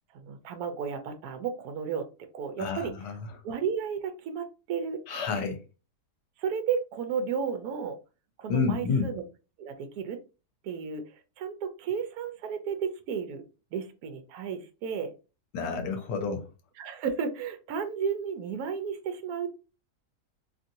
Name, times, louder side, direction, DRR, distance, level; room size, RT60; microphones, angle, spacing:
voice 1, 0.1-2.1 2.3-2.9 3.4-5.0 6.4-8.0 8.4-9.2 9.6-10.2 10.6-13.4 13.7-15.1 16.8-19.5, right 6 dB, 70° right, 1.0 m, -33 dB
voice 2, 2.6-3.2 5.1-5.6 8.5-9.1 15.5-16.5, left 5 dB, 85° left, 1.3 m, -29 dB
3.0 x 2.6 x 2.6 m
omnidirectional pair, 1.8 m